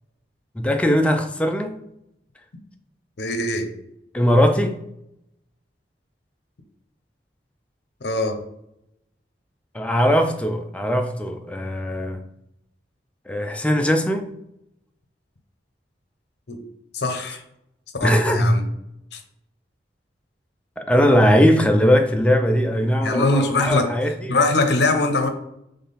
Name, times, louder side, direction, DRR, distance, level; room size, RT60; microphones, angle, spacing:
voice 1, 0.6-1.8 4.1-4.8 9.7-12.2 13.3-14.3 18.0-18.6 20.8-24.3, equal, 5° left, 4 dB, 0.3 m, -19 dB
voice 2, 3.2-3.7 8.0-8.4 16.5-16.6 16.9-17.4 18.0-18.6 19.1-19.2 23.0-23.9 24.3-25.3, left 2 dB, 65° left, 6 dB, 0.7 m, -22 dB
3.7 x 3.3 x 4.1 m, 0.80 s
head